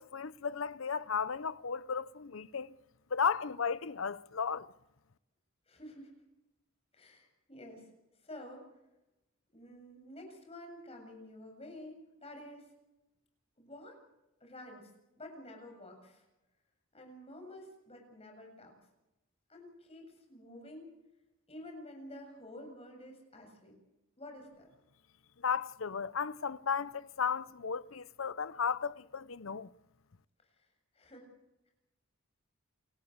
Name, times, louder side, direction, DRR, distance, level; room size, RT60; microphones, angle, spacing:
voice 1, 0.0-2.7 3.1-4.7 25.4-29.7, left 6 dB, 75° left, 0.8 m, -34 dB
voice 2, 5.7-6.2 6.9-7.9 8.2-8.7 9.5-12.7 13.6-14.0 14.4-14.9 15.2-16.3 16.9-18.8 19.5-20.9 21.5-23.8 24.2-24.7 30.5-30.7 30.9-31.3, left 1 dB, 30° left, 7.7 m, -50 dB
28.5 x 15.0 x 8.0 m
head